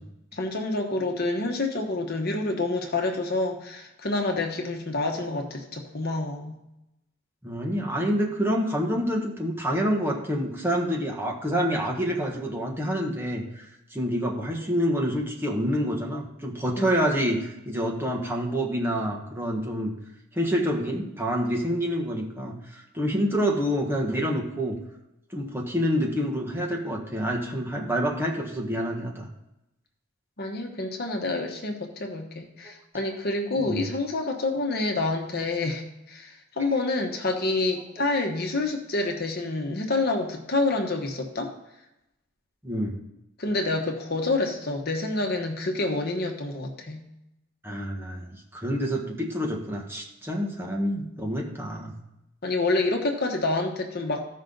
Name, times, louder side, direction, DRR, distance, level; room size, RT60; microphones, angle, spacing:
voice 1, 0.3-6.6 16.8-16.9 30.4-41.5 43.4-47.0 51.7-51.9 52.4-54.3, left 2 dB, 50° left, 2 dB, 1.2 m, -28 dB
voice 2, 7.4-19.9 20.3-24.7 25.3-29.3 32.6-32.7 33.6-33.9 42.6-43.0 47.6-51.9, equal, 10° right, -1 dB, 1.4 m, -27 dB
15.0 x 5.7 x 3.9 m, 0.89 s
head